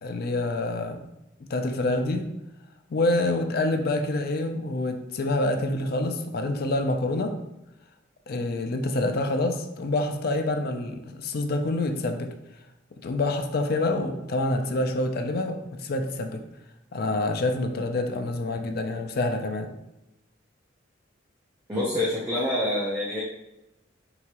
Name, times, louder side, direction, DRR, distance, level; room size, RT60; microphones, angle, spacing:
voice 1, 0.0-1.0 1.5-2.3 2.9-7.3 8.3-12.3 13.0-16.4 16.9-19.7, left 2 dB, 50° left, 6 dB, 0.4 m, -27 dB
voice 2, 21.7-23.2, left 1 dB, 10° right, -8 dB, 0.7 m, -26 dB
4.8 x 2.8 x 2.9 m, 0.93 s
head